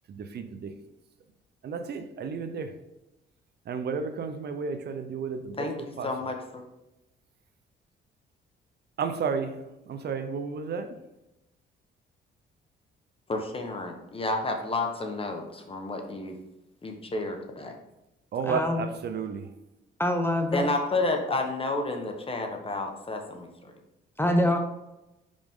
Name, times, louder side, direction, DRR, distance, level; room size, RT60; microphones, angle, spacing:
voice 1, 0.1-0.7 1.6-2.8 3.7-6.1 9.0-11.0 18.3-19.5, right 5 dB, 55° right, 8 dB, 0.7 m, -32 dB
voice 2, 6.0-6.6 13.3-16.4 16.8-17.7 20.5-23.7, left 2 dB, 30° left, 4 dB, 1.1 m, -31 dB
voice 3, 18.5-18.8 20.0-20.7 24.2-24.6, left 1 dB, 10° left, 4 dB, 0.7 m, -24 dB
5.2 x 5.1 x 3.7 m, 0.95 s
cardioid pair, 90°, 20 cm